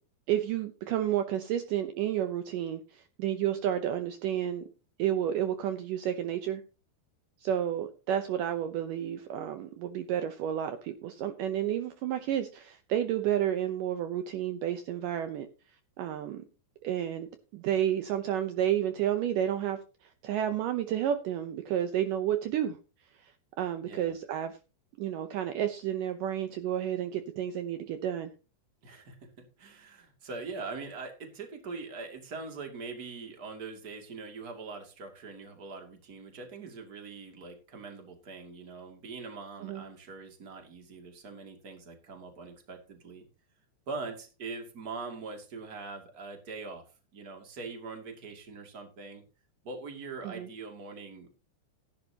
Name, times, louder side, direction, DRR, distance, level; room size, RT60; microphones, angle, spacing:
voice 1, 0.3-4.6 5.0-6.6 7.4-15.5 16.0-16.4 16.8-17.3 17.5-22.8 23.2-24.6 25.0-28.3 39.6-39.8 50.2-50.5, right 10 dB, 80° right, 8 dB, 1.9 m, -31 dB
voice 2, 28.8-43.3 43.9-46.8 47.1-49.2 49.6-51.3, right 4 dB, 30° right, 4 dB, 2.1 m, -42 dB
16.0 x 11.0 x 2.9 m, 0.33 s
omnidirectional pair, 4.9 m